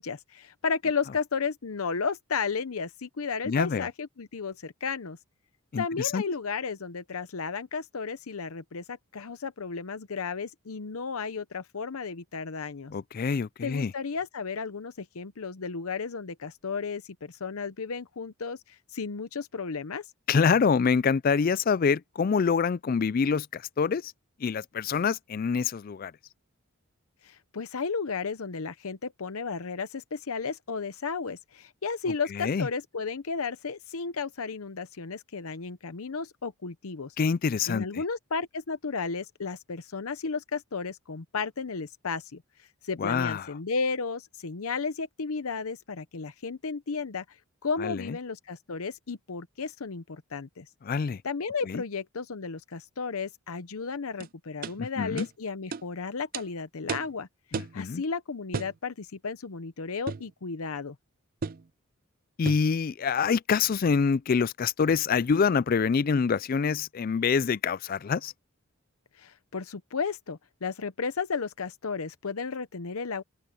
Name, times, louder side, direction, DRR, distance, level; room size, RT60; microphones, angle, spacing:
voice 1, 0.0-5.2 5.8-12.9 13.6-20.1 27.2-37.2 37.7-47.4 47.6-50.7 51.2-61.0 69.1-73.2, left 5 dB, 75° left, 0.8 m, -33 dB
voice 2, 3.5-3.8 5.7-6.2 12.9-13.9 20.3-24.1 24.4-26.1 32.4-32.7 37.2-37.9 43.0-43.5 47.8-48.0 50.8-51.2 51.7-51.8 54.8-55.3 57.5-58.0 62.4-68.3, left 5 dB, 40° left, 0.3 m, -26 dB
sound 1, 54.2-54.3 54.6-54.8 55.2-55.3 55.7-55.9 56.3-56.5 56.9-57.1 57.5-57.8 58.5-58.8 60.1-60.3 61.4-61.7 62.5-62.7, right 5 dB, 40° right, 0.4 m, -34 dB
open air
head